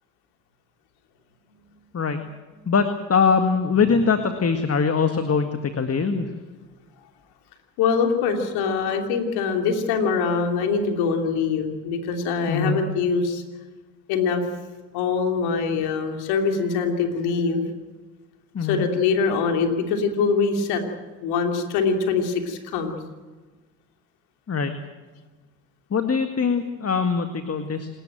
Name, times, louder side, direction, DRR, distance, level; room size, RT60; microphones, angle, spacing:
voice 1, 2.7-5.5 5.8-6.3 12.5-12.8 18.6-18.9 24.5-24.7 25.9-27.9, left 5 dB, 40° left, 7 dB, 1.9 m, -22 dB
voice 2, 7.8-13.4 14.1-14.4 14.9-17.6 18.6-20.8 21.2-22.9, left 5 dB, 80° left, 4 dB, 3.1 m, -23 dB
27.5 x 13.0 x 9.1 m, 1.3 s
hypercardioid pair, 50°, 38 cm